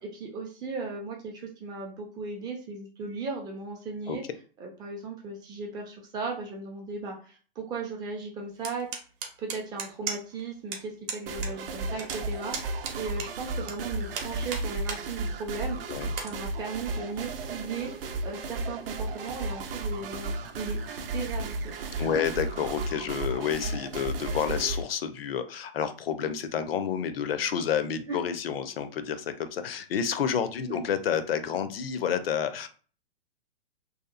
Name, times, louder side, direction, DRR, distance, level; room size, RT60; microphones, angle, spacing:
voice 1, 0.1-4.2 4.6-8.9 9.4-15.9 16.2-22.2 28.1-28.2 30.7-30.8, right 4 dB, 15° right, 0 dB, 0.3 m, -37 dB
sound 1, 8.6-10.4 10.7-10.8 11.1-11.5 11.8-13.7 14.1-15.0 15.5-15.6 16.1-16.3, right 6 dB, 40° right, 0.8 m, -35 dB
sound 2, 11.3-24.8, right 2 dB, 70° right, 0.6 m, -34 dB
voice 2, 22.0-32.7, left 8 dB, 70° left, 10 dB, 0.5 m, -29 dB
2.8 x 2.3 x 2.4 m, 0.39 s
hypercardioid pair, 125°, 30 cm